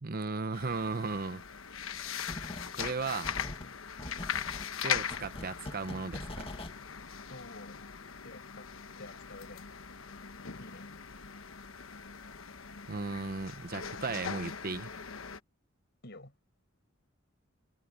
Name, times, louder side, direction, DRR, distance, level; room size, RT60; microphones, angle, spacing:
voice 1, 0.0-1.4 2.8-3.3 4.8-6.5 12.9-14.9, right 4 dB, 45° right, 0.8 m, -36 dB
sound 1, 0.5-15.4, left 7 dB, 80° left, 1.2 m, -40 dB
sound 2, 2.3-3.0 3.2-6.8, left 1 dB, 30° left, 1.8 m, -43 dB
voice 2, 7.3-7.8 8.2-8.7 9.0-9.6 10.6-10.9 16.0-16.3, left 2 dB, 55° left, 7.0 m, -49 dB
head